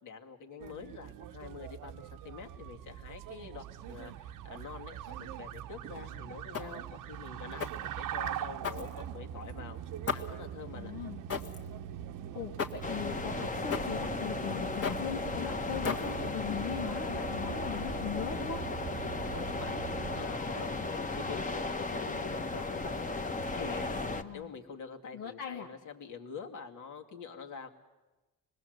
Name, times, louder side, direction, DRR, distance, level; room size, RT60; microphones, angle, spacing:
voice 1, 0.0-9.8 10.1-10.9 19.0-19.8 20.1-23.1 23.5-27.7, left 6 dB, 70° left, 3 dB, 2.5 m, -46 dB
sound 1, 0.6-20.2, right 10 dB, 75° right, 0.8 m, -43 dB
sound 2, 6.5-6.9 7.6-7.9 8.6-9.3 10.1-10.4 11.3-11.7 12.6-12.9 13.7-14.0 14.8-15.1 15.8-16.3, left 5 dB, 45° left, 2.0 m, -36 dB
voice 2, 10.7-11.2 12.3-18.6 24.1-24.5 25.1-25.7, left 8 dB, 90° left, 1 dB, 1.7 m, -39 dB
sound 3, 12.8-24.2, left 3 dB, 25° left, 1.3 m, -35 dB
26.5 x 20.5 x 8.0 m, 1.1 s
cardioid pair, 105°, 32 cm